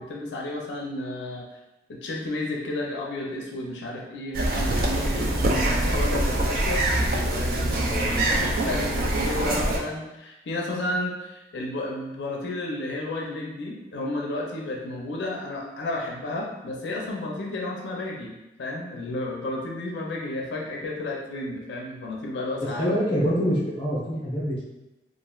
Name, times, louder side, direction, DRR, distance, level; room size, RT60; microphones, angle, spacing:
voice 1, 0.0-1.5 1.9-23.0, left 1 dB, 90° left, -1 dB, 0.4 m, -32 dB
sound 1, 4.3-9.8, right 1 dB, 55° right, 0.4 m, -24 dB
voice 2, 22.7-24.6, equal, 30° left, -6 dB, 0.7 m, -25 dB
3.0 x 2.4 x 2.3 m, 0.99 s
head